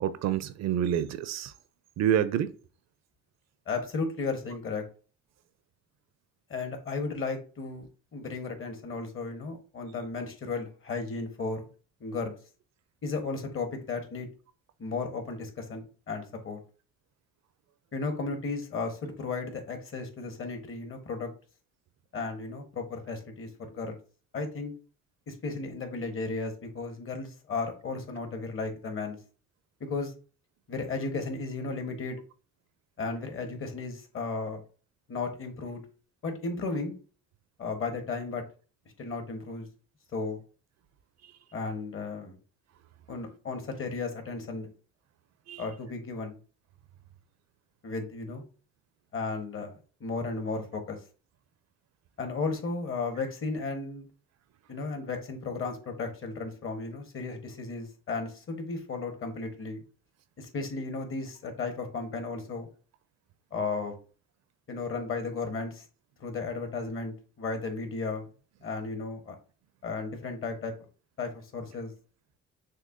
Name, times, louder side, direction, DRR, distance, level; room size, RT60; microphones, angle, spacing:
voice 1, 0.0-1.5 2.0-2.5 45.5-45.7, right 10 dB, 60° right, 0.5 m, -27 dB
voice 2, 3.7-4.8 6.5-11.7 12.0-12.3 13.0-14.3 14.8-16.6 17.9-21.3 22.1-24.0 24.3-24.7 25.3-29.2 29.8-30.1 30.7-32.2 33.0-34.6 35.1-35.8 36.2-36.9 37.6-38.4 39.0-39.7 40.1-40.4 41.5-42.4 43.1-44.7 45.6-46.4 47.8-48.4 49.1-51.0 52.2-54.1 54.7-59.8 60.4-62.7 63.5-64.0 64.7-65.8 66.2-68.3 68.6-69.3 69.8-70.7 71.2-71.9, left 4 dB, 45° left, 1.2 m, -34 dB
6.4 x 2.3 x 2.5 m
cardioid pair, 95°, 30 cm